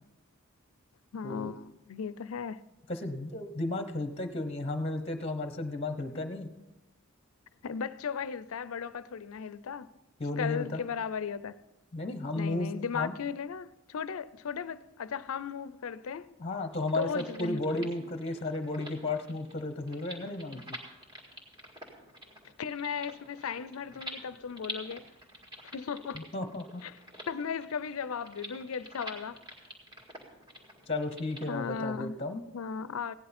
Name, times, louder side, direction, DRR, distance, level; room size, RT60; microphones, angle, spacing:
voice 1, 1.1-2.6 7.6-9.9 10.4-11.6 12.4-16.3 16.9-18.2 22.6-25.0 25.7-26.3 26.8-26.9 27.3-29.4 31.5-32.2 32.5-33.1, left 6 dB, 75° left, 0.5 m, -36 dB
voice 2, 2.9-6.5 10.2-10.8 11.9-13.1 16.4-20.8 26.1-26.8 30.9-32.4, left 2 dB, 25° left, 0.9 m, -34 dB
sound 1, 16.7-31.5, equal, 20° right, 1.9 m, -47 dB
16.5 x 10.5 x 4.3 m
head